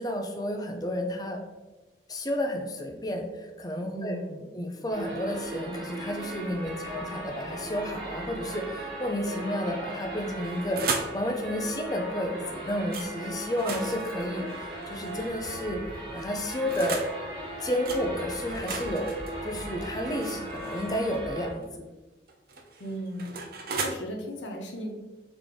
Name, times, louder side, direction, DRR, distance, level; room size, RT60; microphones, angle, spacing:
voice 1, 0.0-1.4 2.1-4.2 4.5-15.8 16.1-17.0 17.6-19.2 19.4-21.9, left 1 dB, 20° left, 4 dB, 0.5 m, -31 dB
voice 2, 3.9-4.5 22.8-23.4 23.7-24.9, equal, 85° left, 1 dB, 0.8 m, -36 dB
sound 1, 4.9-21.5, right 1 dB, 25° right, 1.1 m, -38 dB
sound 2, 10.2-11.2 12.9-13.1 13.5-15.4 16.2-17.1 17.9-18.0 18.5-21.2 22.3-23.9, right 4 dB, 55° right, 0.5 m, -36 dB
3.9 x 3.6 x 3.2 m, 1.1 s
head